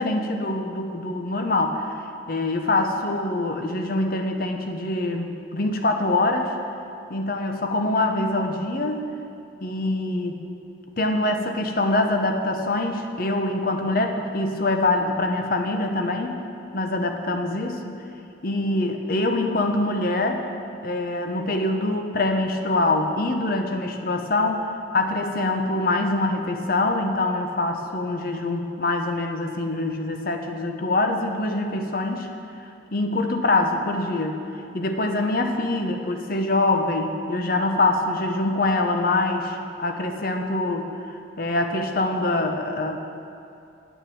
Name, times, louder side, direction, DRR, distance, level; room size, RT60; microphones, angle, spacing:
voice 1, 0.0-2.0 2.3-6.6 7.1-9.1 9.6-10.4 11.0-16.4 16.7-18.0 18.4-20.5 20.8-32.3 32.9-34.4 34.7-43.0, left 2 dB, 50° left, 4 dB, 0.8 m, -24 dB
9.1 x 7.2 x 7.8 m, 2.7 s
head